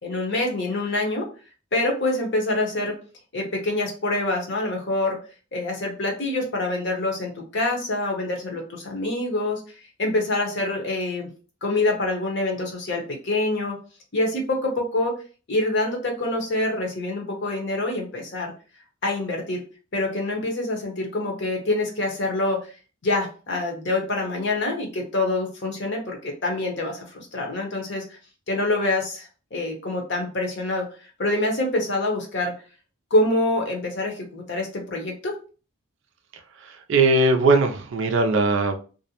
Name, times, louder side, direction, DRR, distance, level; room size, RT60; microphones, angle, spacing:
voice 1, 0.0-1.3 1.7-3.0 3.3-5.2 5.5-9.6 10.0-11.3 11.6-13.8 14.1-15.1 15.5-18.5 19.0-19.6 19.9-22.6 23.0-28.2 28.5-30.9 31.2-32.5 33.1-35.3, left 2 dB, 55° left, 1 dB, 0.7 m, -26 dB
voice 2, 36.6-38.8, right 3 dB, 60° right, 4 dB, 0.3 m, -20 dB
2.5 x 2.1 x 2.8 m, 0.36 s
head